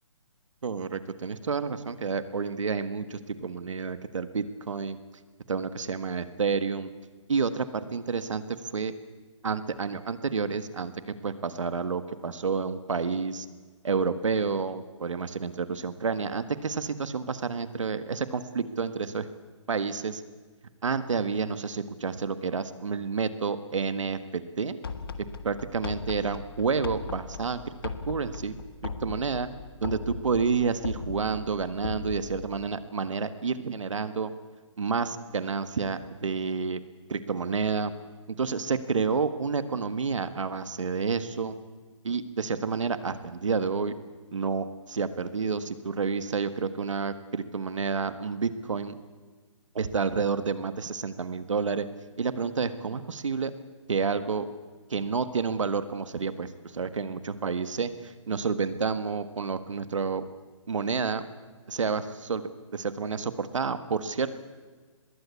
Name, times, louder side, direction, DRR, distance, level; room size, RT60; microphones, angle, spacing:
voice 1, 0.6-5.0 5.5-6.9 7.3-8.4 8.7-8.9 9.4-13.5 13.8-19.3 19.7-20.2 20.8-24.8 25.2-27.7 28.1-29.5 29.8-34.3 34.8-36.8 37.1-37.9 38.3-41.5 42.0-44.0 44.3-49.0 49.7-51.9 52.2-53.5 53.9-54.5 54.9-60.2 60.7-61.2 61.7-62.4 62.7-64.3, right 5 dB, 70° right, 11 dB, 1.6 m, -29 dB
sound 1, 24.8-32.7, left 5 dB, 45° left, 1.5 m, -38 dB
24.5 x 21.5 x 8.4 m, 1.4 s
hypercardioid pair, 180°, 16 cm